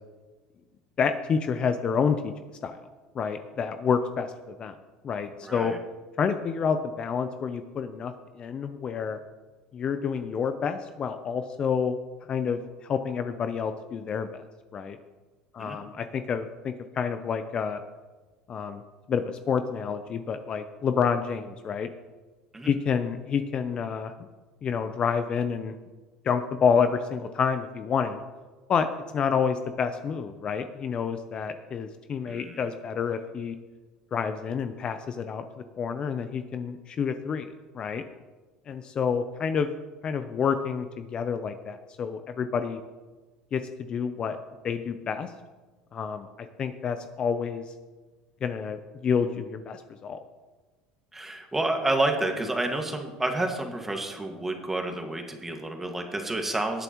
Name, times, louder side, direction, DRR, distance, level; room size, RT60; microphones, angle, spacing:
voice 1, 1.0-2.3 2.6-2.7 3.1-4.8 5.0-5.7 6.2-9.2 9.7-12.0 12.3-14.4 14.7-15.0 15.5-17.8 18.5-18.8 19.1-21.9 22.7-24.1 24.6-25.7 26.2-28.2 28.7-28.9 29.1-33.5 34.1-35.4 35.8-37.5 37.7-38.0 38.7-39.7 40.0-42.8 43.5-43.6 43.9-44.4 44.6-45.3 45.9-47.7 48.4-50.2, left 6 dB, 40° left, 9 dB, 0.6 m, -28 dB
voice 2, 5.4-5.8 15.6-15.8 22.5-22.7 32.3-32.7 51.1-56.8, right 2 dB, 10° right, 3 dB, 1.9 m, -29 dB
19.0 x 7.8 x 3.1 m, 1.3 s
supercardioid pair, 100°, 3 cm